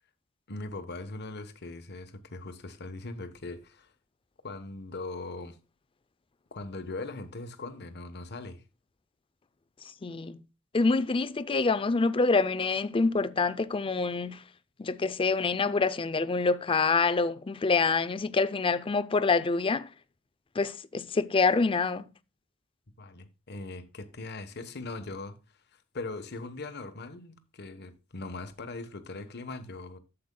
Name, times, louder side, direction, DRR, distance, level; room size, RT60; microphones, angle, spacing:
voice 1, 0.5-3.9 4.4-5.6 6.5-8.6 23.0-25.4 25.9-30.0, left 2 dB, 55° left, 1.1 m, -40 dB
voice 2, 10.0-10.4 10.7-14.4 14.8-19.9 20.6-22.1, left 4 dB, 25° left, 0.4 m, -26 dB
12.0 x 7.8 x 2.2 m
head